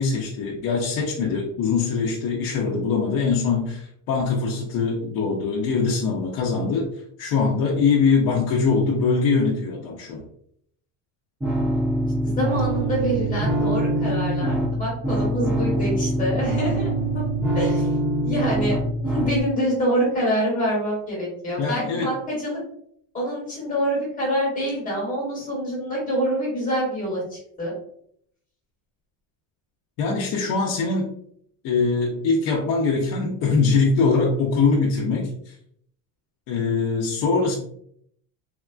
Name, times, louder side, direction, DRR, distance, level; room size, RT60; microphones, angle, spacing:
voice 1, 0.0-6.9 7.2-10.2 21.6-22.1 30.0-31.1 31.6-35.5 36.5-37.5, left 4 dB, 50° left, -3 dB, 0.5 m, -22 dB
sound 1, 11.4-19.4, right 1 dB, 5° right, 0.4 m, -24 dB
voice 2, 12.2-17.2 17.5-17.9 18.2-18.7 19.0-22.6 23.1-27.7, equal, 20° left, -5 dB, 1.2 m, -26 dB
3.5 x 2.3 x 2.3 m, 0.67 s
cardioid pair, 175°, 41 cm